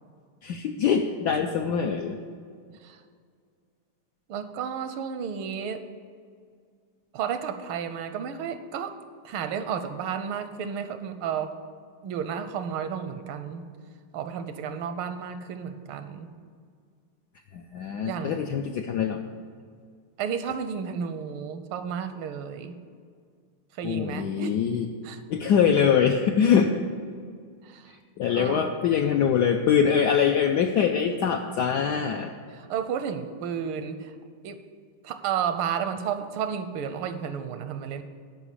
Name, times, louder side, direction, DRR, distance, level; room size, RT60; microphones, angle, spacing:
voice 1, 0.4-2.2 17.5-19.2 23.8-24.9 25.3-26.7 28.2-32.3, left 7 dB, 80° left, 4 dB, 0.9 m, -23 dB
voice 2, 4.3-5.8 7.1-9.0 9.2-11.6 12.0-13.6 14.1-16.3 18.0-18.4 20.2-22.8 23.8-24.6 25.0-25.2 27.6-27.9 28.3-28.7 32.5-34.1 34.4-34.6 35.0-38.0, right 7 dB, 80° right, 10 dB, 1.5 m, -32 dB
11.0 x 4.8 x 8.4 m, 2.1 s
omnidirectional pair, 2.3 m